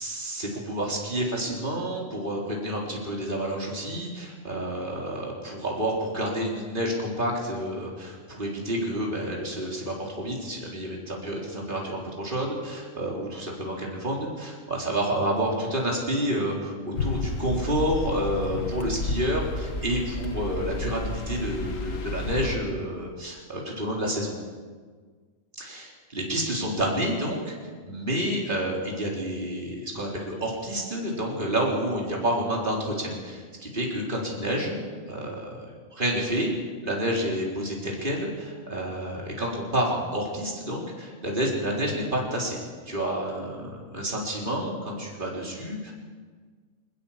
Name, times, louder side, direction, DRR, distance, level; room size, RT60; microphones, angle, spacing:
voice 1, 0.0-16.7 17.0-24.4 25.7-27.5 27.8-35.7 35.9-36.6 36.8-42.6 42.9-45.9, right 1 dB, 35° right, -2 dB, 4.3 m, -29 dB
sound 1, 16.9-22.6, left 3 dB, 70° left, 1.9 m, -31 dB
21.5 x 19.5 x 7.5 m, 1.5 s
omnidirectional pair, 1.4 m